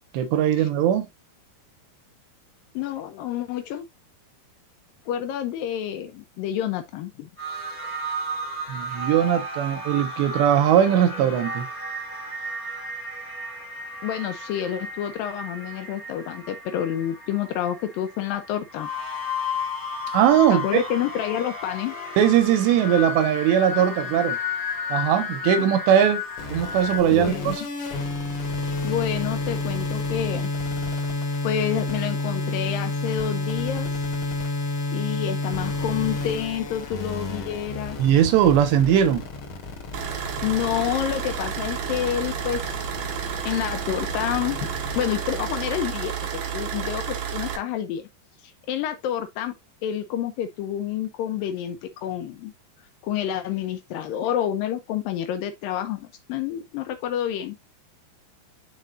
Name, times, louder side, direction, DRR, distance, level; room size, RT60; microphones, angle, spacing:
voice 1, 0.1-1.1 8.7-11.7 20.1-20.8 22.2-24.4 24.9-26.2 26.5-27.6 38.0-39.2, right 10 dB, 85° right, 3.4 m, -20 dB
voice 2, 2.7-3.9 5.1-7.3 14.0-18.9 20.5-22.0 27.1-27.5 28.8-30.5 31.4-33.9 34.9-38.0 40.4-42.6 43.5-44.7 45.0-46.1 46.5-48.1 48.4-49.5 49.8-52.5 53.0-57.6, left 10 dB, 85° left, 2.0 m, -28 dB
sound 1, 7.4-27.0, left 3 dB, 15° left, 0.7 m, -33 dB
sound 2, 26.4-45.9, left 2 dB, 65° left, 1.3 m, -30 dB
sound 3, 39.9-47.6, right 8 dB, 65° right, 2.9 m, -31 dB
9.8 x 4.3 x 2.5 m
omnidirectional pair, 4.9 m